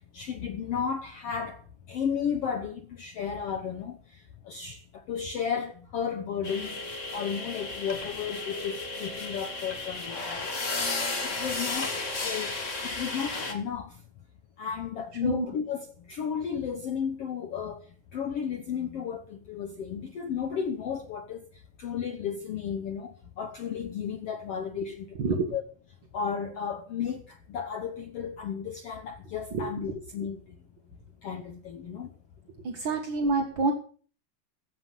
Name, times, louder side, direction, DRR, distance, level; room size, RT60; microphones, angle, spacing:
voice 1, 0.1-1.6 1.9-4.0 4.4-4.8 5.1-6.8 7.1-10.5 11.2-12.5 12.8-14.0 14.6-17.8 18.1-21.5 21.8-25.6 26.1-30.4 31.2-32.1, left 7 dB, 70° left, 1.5 m, -33 dB
sound 1, 6.4-13.5, left 3 dB, 30° left, 1.6 m, -33 dB
voice 2, 25.1-25.5 29.5-29.7 32.6-33.7, right 3 dB, 55° right, 1.3 m, -27 dB
15.5 x 7.9 x 7.3 m
omnidirectional pair, 4.1 m